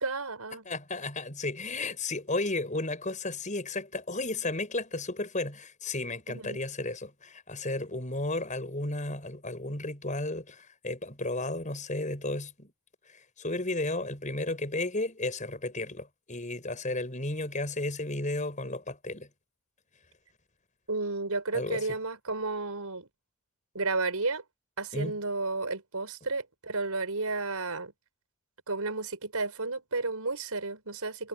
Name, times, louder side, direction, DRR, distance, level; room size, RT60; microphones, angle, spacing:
voice 1, 0.0-0.7 6.3-6.6 20.9-23.1 23.8-24.4 24.8-27.9 28.7-31.3, right 3 dB, 90° right, 5.1 m, -32 dB
voice 2, 0.7-12.7 13.1-19.3 21.5-22.0 24.9-25.2, left 2 dB, 35° left, 5.6 m, -33 dB
head